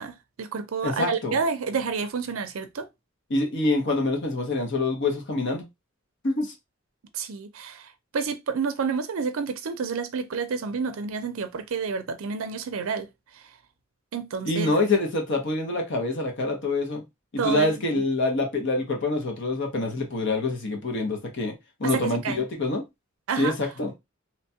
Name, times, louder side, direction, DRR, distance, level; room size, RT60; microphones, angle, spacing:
voice 1, 0.0-2.9 7.1-13.1 13.3-13.4 14.1-14.7 17.4-18.0 21.8-22.4 23.3-23.5, right 5 dB, 80° right, 0.5 m, -29 dB
voice 2, 0.8-1.4 3.3-5.6 6.2-6.5 14.4-17.0 17.4-21.5 21.8-22.8 23.4-23.9, left 2 dB, 60° left, 0.8 m, -26 dB
2.9 x 2.2 x 2.7 m
head